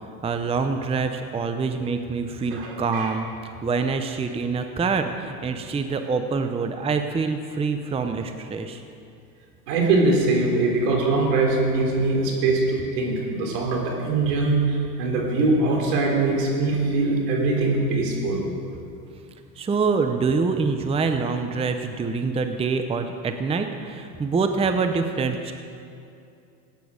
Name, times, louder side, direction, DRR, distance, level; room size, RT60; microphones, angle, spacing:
voice 1, 0.2-8.8 19.6-25.5, right 4 dB, 10° right, 7 dB, 0.7 m, -25 dB
voice 2, 2.5-3.1 9.7-18.4, right 3 dB, 75° right, 0 dB, 3.7 m, -22 dB
17.0 x 9.4 x 6.5 m, 2.5 s
supercardioid pair, 110°, 48 cm